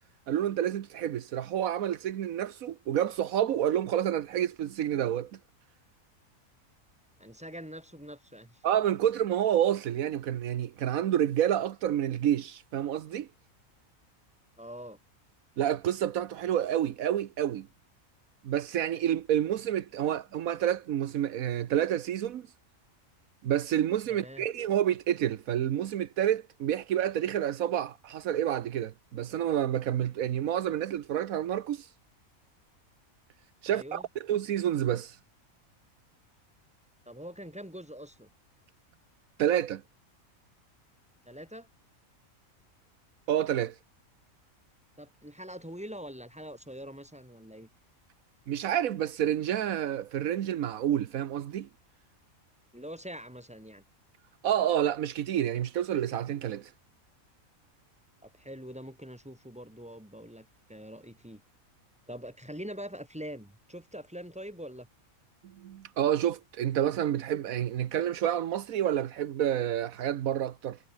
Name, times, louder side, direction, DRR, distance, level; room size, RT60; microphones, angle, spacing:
voice 1, 0.3-5.3 8.6-13.3 15.6-17.7 18.4-22.5 23.4-31.9 33.6-34.0 34.3-35.2 39.4-39.8 43.3-43.8 48.5-51.7 54.4-56.7 65.4-70.8, right 10 dB, 80° right, 1.3 m, -29 dB
voice 2, 7.2-8.6 14.6-15.0 24.1-24.5 33.7-34.1 37.1-38.3 41.3-41.7 45.0-47.7 52.7-53.8 58.2-61.4 62.1-64.9, equal, 5° right, 5.4 m, -44 dB
omnidirectional pair, 1.5 m